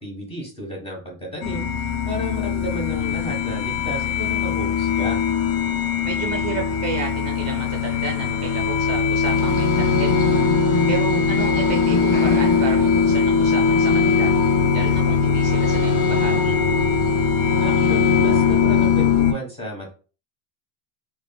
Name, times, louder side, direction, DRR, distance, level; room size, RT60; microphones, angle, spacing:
voice 1, 0.0-1.7 2.0-5.2 17.6-19.9, left 1 dB, 15° left, -3 dB, 1.3 m, -32 dB
sound 1, 1.4-19.3, left 6 dB, 55° left, 0.5 m, -21 dB
voice 2, 6.0-10.2 10.9-14.3 14.7-16.6, right 6 dB, 35° right, 1 dB, 0.6 m, -32 dB
sound 2, 9.3-19.2, left 3 dB, 30° left, 1.3 m, -25 dB
3.3 x 2.2 x 2.2 m, 0.36 s
supercardioid pair, 115°, 44 cm